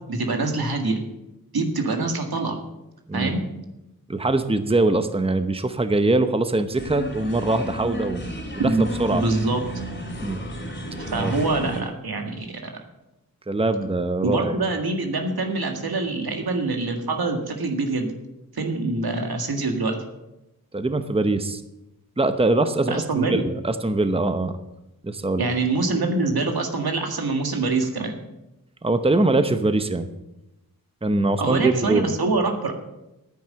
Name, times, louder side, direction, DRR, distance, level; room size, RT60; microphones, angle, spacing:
voice 1, 0.1-1.0 1.5-2.6 3.1-3.4 8.6-9.8 11.1-12.7 14.2-18.1 18.5-20.0 22.9-23.4 25.4-28.1 31.4-32.7, right 3 dB, 90° right, 4 dB, 1.9 m, -25 dB
voice 2, 4.1-8.2 8.6-9.2 10.2-10.4 11.1-11.3 13.5-14.5 20.7-21.6 22.2-24.5 25.0-25.4 28.8-30.1 31.0-32.1, right 2 dB, 15° right, 9 dB, 0.8 m, -22 dB
sound 1, 6.8-11.8, equal, 30° left, 2.8 m, -33 dB
10.5 x 9.4 x 7.6 m, 0.93 s
wide cardioid pair, 80°, 36 cm